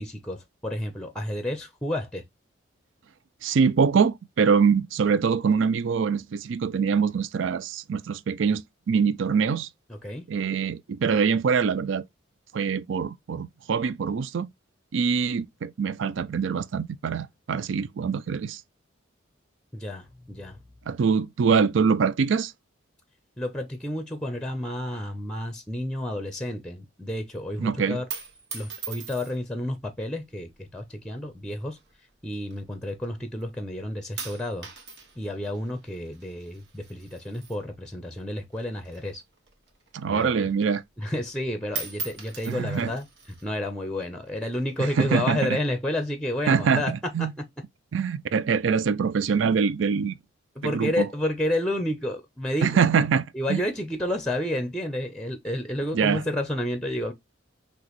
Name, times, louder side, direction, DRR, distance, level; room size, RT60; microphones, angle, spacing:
voice 1, 0.0-2.2 9.9-10.2 19.7-20.6 23.4-28.0 28.5-31.8 32.2-34.7 35.2-39.2 40.1-40.5 41.0-43.1 43.4-46.9 47.2-47.4 50.6-52.7 53.3-57.1, left 1 dB, 5° left, 0.6 m, -30 dB
voice 2, 3.4-9.7 10.3-12.0 12.5-14.5 14.9-18.6 20.9-22.5 27.6-28.0 39.9-40.8 42.5-42.9 44.8-45.6 46.5-47.3 47.9-50.2 50.6-51.1 52.6-53.6 55.9-56.2, right 6 dB, 75° right, 0.4 m, -24 dB
sound 1, 28.1-29.6 30.4-30.9 31.7-33.1 33.4-33.8 34.2-38.2 38.5-40.2 40.6-40.7 41.0-41.4 41.7-43.5 44.3-44.9, right 6 dB, 60° right, 1.5 m, -40 dB
6.0 x 2.9 x 3.0 m
head